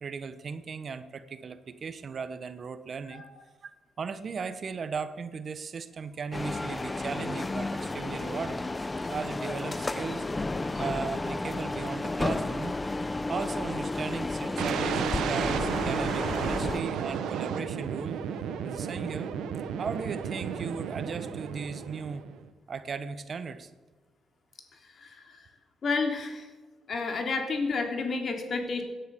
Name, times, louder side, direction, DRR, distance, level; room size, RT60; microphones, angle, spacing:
voice 1, 0.0-3.2 3.6-3.7 4.0-8.6 9.1-10.2 10.8-12.7 13.3-18.2 18.6-19.4 19.8-22.3 22.7-23.7, right 5 dB, 50° right, 12 dB, 1.2 m, -37 dB
sound 1, 6.3-16.8, left 2 dB, 25° left, 0.8 m, -32 dB
sound 2, 14.6-22.4, right 7 dB, 85° right, 1.3 m, -33 dB
voice 2, 24.9-25.5 25.8-26.5 26.9-28.8, left 4 dB, 55° left, 4 dB, 3.3 m, -30 dB
17.5 x 10.5 x 7.0 m, 1.3 s
cardioid pair, 70°, 0 cm